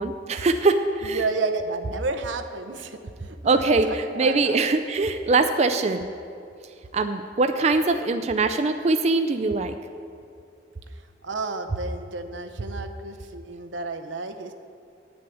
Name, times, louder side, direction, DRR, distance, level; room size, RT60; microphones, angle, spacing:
voice 1, 0.0-1.2 3.4-6.1 6.9-9.7, right 3 dB, 35° right, 7 dB, 0.4 m, -22 dB
voice 2, 1.0-4.6 11.2-14.5, right 3 dB, 90° right, 7 dB, 0.8 m, -31 dB
9.2 x 6.1 x 8.4 m, 2.5 s
head